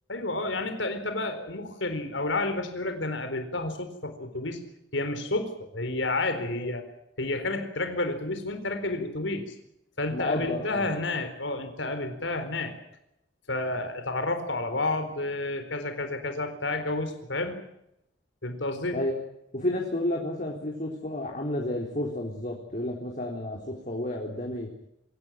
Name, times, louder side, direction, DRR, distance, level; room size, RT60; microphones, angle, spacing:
voice 1, 0.1-4.6 4.9-6.8 7.2-9.5 10.0-12.7 13.5-17.6 18.4-19.0, left 2 dB, 80° left, 8 dB, 4.3 m, -30 dB
voice 2, 10.1-10.9 18.9-19.1 19.5-24.7, left 1 dB, 45° left, 0 dB, 4.0 m, -31 dB
26.5 x 17.0 x 9.2 m, 0.82 s
head